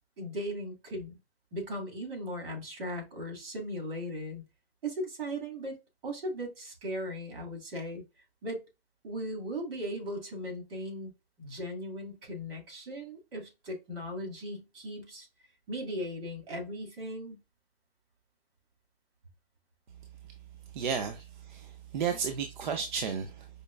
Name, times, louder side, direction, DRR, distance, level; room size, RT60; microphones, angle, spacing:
voice 1, 0.2-1.2 1.5-4.4 4.8-5.8 6.0-8.0 8.4-8.6 9.0-11.1 11.4-15.3 15.7-17.4, equal, 70° right, 2.1 m, -37 dB
voice 2, 20.7-23.5, right 6 dB, 50° right, 0.5 m, -33 dB
5.0 x 2.2 x 2.3 m
hypercardioid pair, 175°, 30 cm